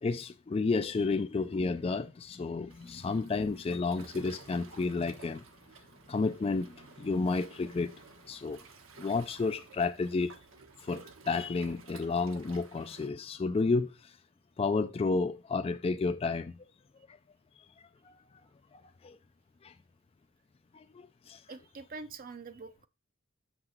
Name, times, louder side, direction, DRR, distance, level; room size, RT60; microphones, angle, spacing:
voice 1, 0.0-5.4 6.1-7.9 8.2-8.6 9.0-10.3 10.8-14.2 14.6-16.6 18.0-18.1 18.7-19.2 19.6-19.7 20.7-21.4, left 3 dB, 30° left, 0.3 m, -31 dB
Waves surf, 2.7-13.1, right 4 dB, 75° right, 1.2 m, -54 dB
voice 2, 21.5-22.9, right 4 dB, 45° right, 0.6 m, -45 dB
6.7 x 5.9 x 4.3 m
head